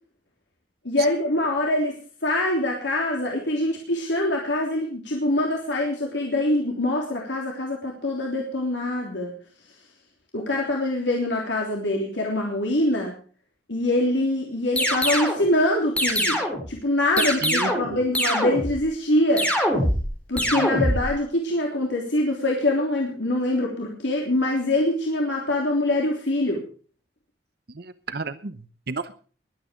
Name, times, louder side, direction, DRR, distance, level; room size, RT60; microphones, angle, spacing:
voice 1, 0.8-2.0 2.2-9.3 10.3-13.2 13.7-16.4 16.7-19.5 20.3-26.6, left 1 dB, 80° left, 0 dB, 3.3 m, -24 dB
sound 1, 14.8-15.4 16.0-16.7 17.2-17.9 18.2-18.8 19.4-20.1 20.4-21.1, equal, 5° left, 3.7 m, -23 dB
voice 2, 17.4-18.0 20.6-20.7 27.7-29.2, right 3 dB, 60° right, 13 dB, 0.9 m, -32 dB
21.5 x 9.0 x 5.2 m, 0.40 s
head